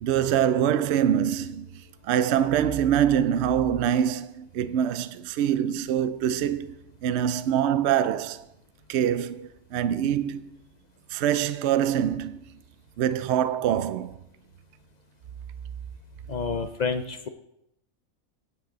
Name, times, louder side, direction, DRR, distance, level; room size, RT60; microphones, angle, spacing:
voice 1, 0.0-8.5 8.9-10.4 11.1-12.4 13.0-14.1, right 9 dB, 65° right, 0.8 m, -24 dB
voice 2, 16.3-17.3, left 5 dB, 60° left, 0.4 m, -29 dB
18.0 x 6.1 x 3.9 m
omnidirectional pair, 1.4 m